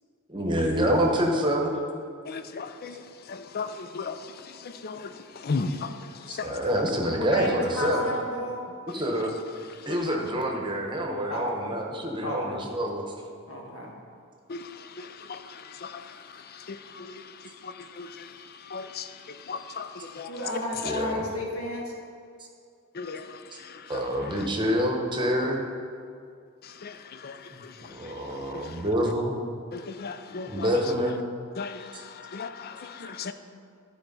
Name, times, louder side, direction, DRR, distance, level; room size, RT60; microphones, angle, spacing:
voice 1, 0.3-1.7 6.3-8.1 8.9-9.3 9.9-13.0 20.8-21.3 23.5-23.6 23.9-25.7 27.5-29.3 30.5-31.2 31.9-32.0, equal, 20° right, 1.0 m, -27 dB
voice 2, 2.3-2.9 3.5-4.1 4.8-5.0 5.4-5.9 6.4-6.6 14.5-14.6 15.3-15.4 15.8-15.9 16.7-17.1 18.0-18.1 18.7-19.0 19.5-19.9 20.2-20.3 23.0-23.2 23.9-24.0 26.8-26.9 27.2-27.3 30.0-30.5 31.6-31.8 32.3-32.5 33.2-33.3, left 4 dB, 45° left, 0.5 m, -33 dB
voice 3, 7.2-8.6 11.3-11.6 12.2-12.6 13.5-13.9 20.3-21.9, left 1 dB, 75° left, 1.8 m, -32 dB
11.5 x 4.5 x 5.4 m
head